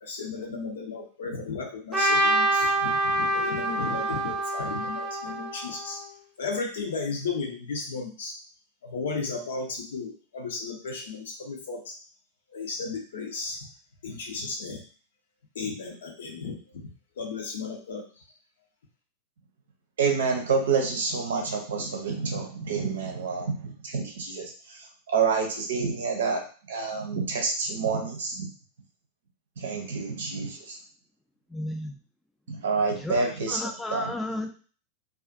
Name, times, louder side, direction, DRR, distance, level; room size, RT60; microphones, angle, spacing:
voice 1, 0.0-6.0 6.4-8.4 8.8-11.9 12.5-13.6 14.0-14.8 15.6-16.6 17.2-18.0, left 4 dB, 60° left, 2 dB, 0.6 m, -34 dB
Trumpet, 1.9-6.1, right 1 dB, 15° right, 0.8 m, -26 dB
voice 2, 20.0-26.4 26.7-28.5 29.6-30.8 32.5-34.1, right 5 dB, 65° right, 3 dB, 0.6 m, -28 dB
voice 3, 31.5-31.9 33.0-33.2 33.5-34.6, left 1 dB, 5° left, 3 dB, 0.4 m, -33 dB
2.4 x 2.4 x 2.4 m, 0.40 s
figure-of-eight pair, 90°, 0 cm